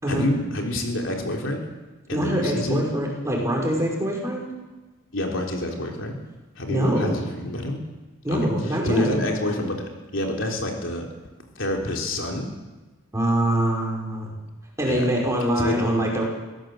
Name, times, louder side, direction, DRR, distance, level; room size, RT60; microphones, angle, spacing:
voice 1, 0.1-1.6 2.1-2.9 5.1-6.2 6.6-7.8 8.3-11.1 11.6-12.5 14.8-15.1 15.6-15.9, left 1 dB, 65° left, 1 dB, 3.6 m, -28 dB
voice 2, 2.1-4.4 6.7-7.2 8.2-9.2 13.1-14.3 14.8-16.2, right 1 dB, 15° right, -2 dB, 5.7 m, -24 dB
23.5 x 17.0 x 7.9 m, 1.2 s
head